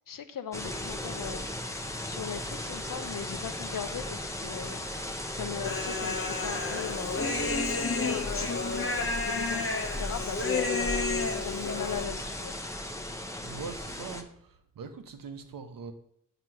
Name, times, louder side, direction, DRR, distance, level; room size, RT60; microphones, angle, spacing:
voice 1, 0.1-1.5 2.0-4.8 5.3-10.9 11.4-12.6, left 8 dB, 75° left, 0.6 m, -39 dB
sound 1, 0.5-14.2, left 1 dB, 10° left, 0.6 m, -36 dB
Human voice, 5.6-12.0, left 3 dB, 40° left, 0.9 m, -31 dB
voice 2, 13.4-15.9, right 5 dB, 80° right, 0.8 m, -42 dB
7.5 x 3.0 x 5.8 m
wide cardioid pair, 100°, 33 cm